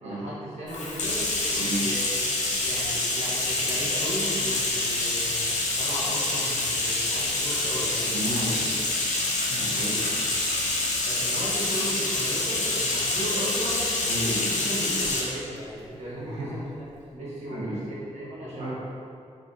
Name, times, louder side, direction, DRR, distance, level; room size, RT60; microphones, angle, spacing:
voice 1, 0.0-2.1 2.6-5.4 5.7-8.5 11.0-16.9 17.1-18.7, equal, 65° right, -8 dB, 1.3 m, -36 dB
Bathtub (filling or washing), 0.7-15.3, left 2 dB, 80° left, 0.6 m, -27 dB
voice 2, 1.5-1.9 8.1-8.6 9.5-10.3 14.0-14.7 16.1-16.5 17.5-17.9 18.6-18.7, right 1 dB, 90° right, -10 dB, 0.8 m, -33 dB
2.9 x 2.6 x 4.0 m, 2.4 s
wide cardioid pair, 110°, 12 cm